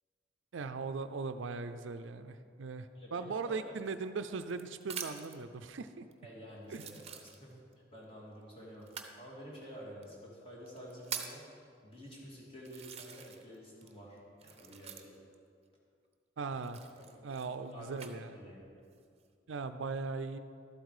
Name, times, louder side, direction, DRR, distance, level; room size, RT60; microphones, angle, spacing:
voice 1, 0.5-6.0 6.7-7.0 16.4-16.8 17.2-18.4 19.5-20.4, right 4 dB, 70° right, 10 dB, 0.5 m, -39 dB
voice 2, 2.9-3.6 6.2-7.6 7.9-11.5 11.8-15.1 17.1-17.3 17.7-17.9 18.3-18.8, equal, 30° left, -4 dB, 2.6 m, -50 dB
sound 1, 3.7-5.4 6.1-6.2 6.7-7.7 8.8-9.2 10.0-10.1 10.7-11.5 12.1-12.2 12.6-13.5 13.8-15.3 16.6-18.1 18.8-19.3, right 8 dB, 35° right, 0.7 m, -45 dB
12.0 x 8.1 x 4.9 m, 2.3 s
head